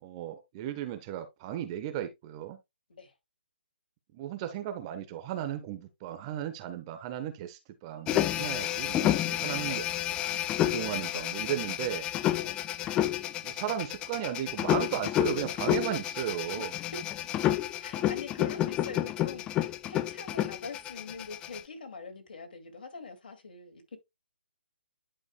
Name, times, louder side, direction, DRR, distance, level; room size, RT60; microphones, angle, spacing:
voice 1, 0.0-2.6 4.1-9.8 10.3-12.1 13.4-16.7, right 11 dB, 30° right, 1.1 m, -35 dB
sound 1, 8.1-21.6, left 12 dB, 15° left, 0.3 m, -30 dB
voice 2, 9.4-9.8 12.3-12.6 16.5-16.7 17.8-24.0, left 4 dB, 55° left, 2.3 m, -44 dB
11.0 x 4.9 x 2.2 m
figure-of-eight pair, 140°, 6 cm